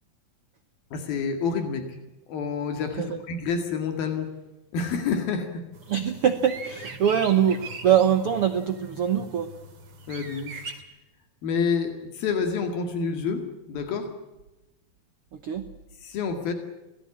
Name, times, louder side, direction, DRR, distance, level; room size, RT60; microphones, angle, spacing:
voice 1, 0.9-1.8 2.3-4.3 4.7-5.6 10.1-10.7 11.4-14.1 16.0-16.5, left 5 dB, 80° left, 6 dB, 4.0 m, -28 dB
sound 1, 5.7-10.8, right 3 dB, 40° right, 3.0 m, -41 dB
voice 2, 5.9-9.5 15.4-15.7, right 9 dB, 75° right, 9 dB, 1.3 m, -23 dB
25.5 x 18.0 x 8.6 m, 1.0 s
omnidirectional pair, 4.2 m